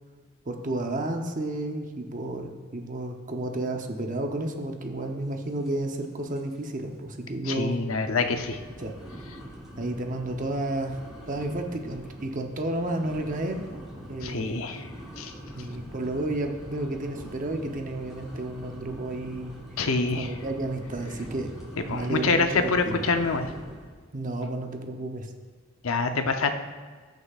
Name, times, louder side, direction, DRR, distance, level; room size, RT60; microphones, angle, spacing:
voice 1, 0.5-7.8 8.8-8.9 9.8-11.0 11.3-13.6 14.1-14.7 15.6-19.6 20.2-21.5 21.9-23.0 24.1-25.3, right 1 dB, 40° right, 3 dB, 0.8 m, -31 dB
sound 1, 5.6-6.0 6.3-6.7 7.1-7.2 7.8-24.0, equal, 5° right, 2.9 m, -43 dB
voice 2, 7.4-8.6 14.2-14.9 15.2-15.3 19.8-20.3 21.8-23.5 25.8-26.6, left 4 dB, 90° left, 6 dB, 0.7 m, -26 dB
19.5 x 6.6 x 2.5 m, 1.5 s
head